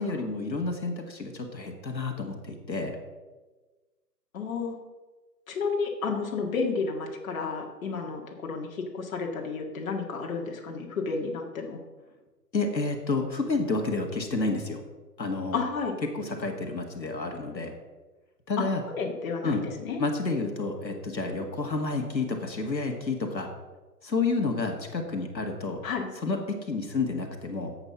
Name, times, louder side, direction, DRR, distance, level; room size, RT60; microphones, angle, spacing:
voice 1, 0.0-2.9 12.5-14.8 15.2-15.6 16.1-17.7 18.5-18.8 19.4-19.6 20.0-23.5 24.0-25.8 26.2-26.4 26.7-27.7, left 3 dB, 90° left, 3 dB, 2.0 m, -30 dB
voice 2, 4.3-4.8 5.5-11.8 15.5-15.9 18.6-18.7 18.9-20.0 25.8-26.1, left 4 dB, 55° left, 1 dB, 2.0 m, -31 dB
10.5 x 8.1 x 5.8 m, 1.2 s
figure-of-eight pair, 135°, 50 cm